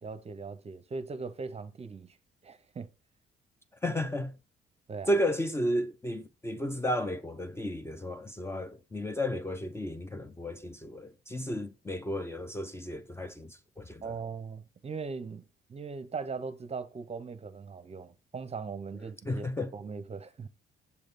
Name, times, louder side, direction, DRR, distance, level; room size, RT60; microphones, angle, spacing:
voice 1, 0.0-2.2 2.4-2.9 4.9-5.1 14.0-15.4 15.7-20.5, right 4 dB, 30° right, 0.7 m, -39 dB
voice 2, 3.8-4.4 5.1-14.2 19.3-19.7, left 1 dB, 10° left, 0.5 m, -33 dB
6.9 x 3.4 x 4.1 m
cardioid pair, 90°, 20 cm